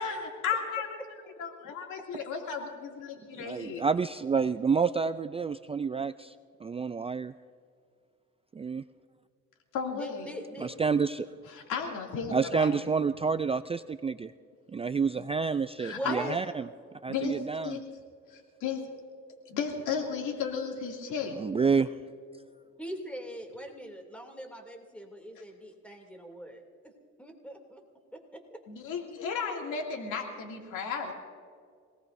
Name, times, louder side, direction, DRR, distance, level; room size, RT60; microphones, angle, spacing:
voice 1, 0.0-1.0 1.4-3.8 9.7-10.3 11.5-12.9 15.8-16.3 17.1-17.4 17.6-17.8 18.3-18.8 19.5-21.4 28.7-31.1, left 6 dB, 90° left, 1 dB, 2.6 m, -34 dB
voice 2, 3.4-6.3 6.6-7.3 8.6-8.8 10.6-11.3 12.3-14.3 14.7-16.6 17.0-17.8 21.4-21.9, right 5 dB, 20° right, 11 dB, 0.3 m, -29 dB
voice 3, 9.9-10.8 15.9-16.4 22.8-26.6 27.2-27.8 28.3-28.4, right 1 dB, 5° left, 2 dB, 2.7 m, -41 dB
26.0 x 18.5 x 2.6 m, 2.2 s
cardioid pair, 90°, 30 cm